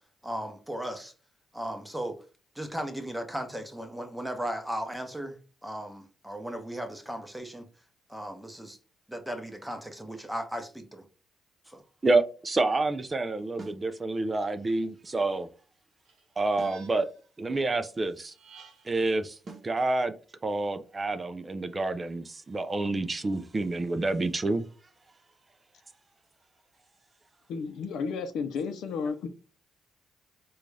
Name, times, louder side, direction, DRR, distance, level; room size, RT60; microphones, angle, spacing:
voice 1, 0.2-1.1 1.5-2.2 2.5-5.4 5.6-7.7 8.1-8.8 9.1-11.0 11.7-11.8, right 1 dB, 5° right, 0.8 m, -36 dB
voice 2, 12.0-15.5 16.4-17.1 17.4-18.3 18.9-19.4 19.6-20.1 20.4-24.6, right 2 dB, 25° right, 0.4 m, -28 dB
sound 1, 13.6-13.9 16.6-16.9 19.5-19.8, right 3 dB, 45° right, 0.8 m, -44 dB
sound 2, 16.0-17.3 18.2-19.1, right 6 dB, 90° right, 0.8 m, -54 dB
voice 3, 27.5-29.3, left 5 dB, 80° left, 0.5 m, -32 dB
3.8 x 2.3 x 3.2 m
cardioid pair, 90°, 0 cm